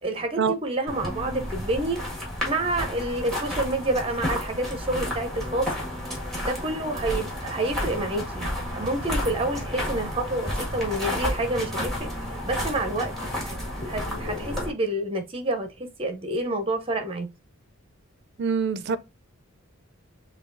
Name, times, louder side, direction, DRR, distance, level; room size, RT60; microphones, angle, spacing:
voice 1, 0.0-2.0 2.4-5.7 6.4-12.1 12.4-13.1 13.4-13.6 13.9-17.3, right 2 dB, 25° right, 0.7 m, -28 dB
sound 1, 0.9-14.7, left 1 dB, ahead, 1.6 m, -31 dB
voice 2, 18.4-19.0, right 5 dB, 55° right, 0.4 m, -24 dB
6.8 x 2.4 x 2.5 m
head